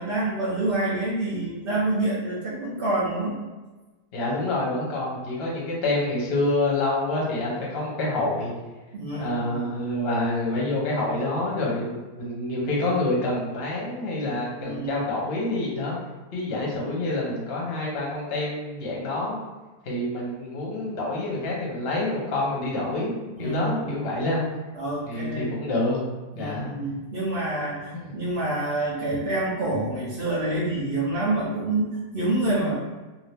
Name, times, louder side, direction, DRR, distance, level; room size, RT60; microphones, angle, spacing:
voice 1, 0.0-3.4 8.9-9.6 14.6-15.0 23.3-24.0 24.7-25.5 26.3-32.7, right 2 dB, 55° right, -6 dB, 0.6 m, -27 dB
voice 2, 4.1-8.5 9.1-16.0 16.3-19.4 19.8-23.1 23.4-24.4 25.1-26.0 26.4-26.7 27.9-28.1, left 2 dB, 45° left, -3 dB, 0.9 m, -27 dB
2.7 x 2.7 x 3.3 m, 1.2 s
omnidirectional pair, 1.7 m